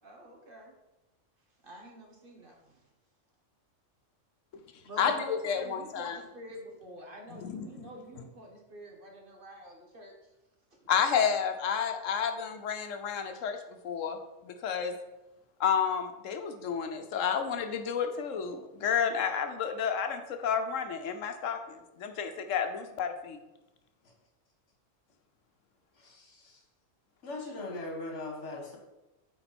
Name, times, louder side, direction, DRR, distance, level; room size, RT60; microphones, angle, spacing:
voice 1, 0.0-0.7 1.6-2.9 4.8-10.3 10.7-10.9, equal, 45° right, 0 dB, 1.5 m, -47 dB
voice 2, 5.0-6.2 7.3-7.7 10.9-14.9 15.6-23.4, left 7 dB, 90° left, 7 dB, 1.1 m, -31 dB
voice 3, 26.0-26.6 27.2-28.8, left 2 dB, 70° left, 0 dB, 1.7 m, -40 dB
8.7 x 4.4 x 4.2 m, 0.99 s
omnidirectional pair, 1.3 m